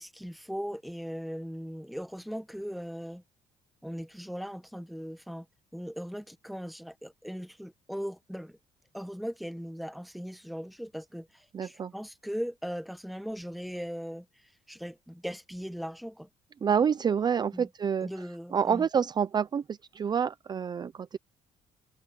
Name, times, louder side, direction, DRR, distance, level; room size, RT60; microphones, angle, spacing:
voice 1, 0.0-3.2 3.8-5.4 5.7-8.6 8.9-14.2 14.7-16.3 17.5-17.7 18.0-18.9, equal, ahead, 1.4 m, -39 dB
voice 2, 11.5-11.9 16.6-18.1 18.5-21.2, right 7 dB, 30° right, 0.5 m, -28 dB
cardioid pair, 120°, 13 cm